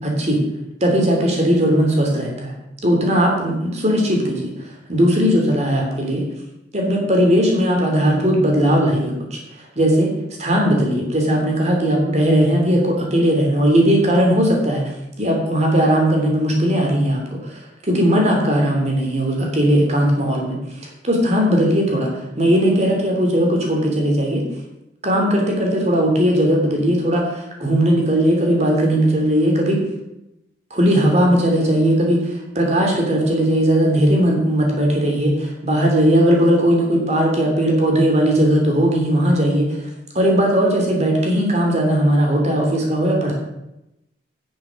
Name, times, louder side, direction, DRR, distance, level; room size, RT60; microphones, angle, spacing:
voice 1, 0.0-0.4 0.8-2.5 2.8-4.5 4.9-6.2 6.7-9.4 9.7-10.1 10.4-14.8 15.2-20.6 21.0-22.1 22.4-24.4 25.0-29.8 30.7-39.8 40.1-43.3, equal, 35° right, 0 dB, 3.1 m, -18 dB
10.0 x 7.1 x 6.4 m, 0.89 s
head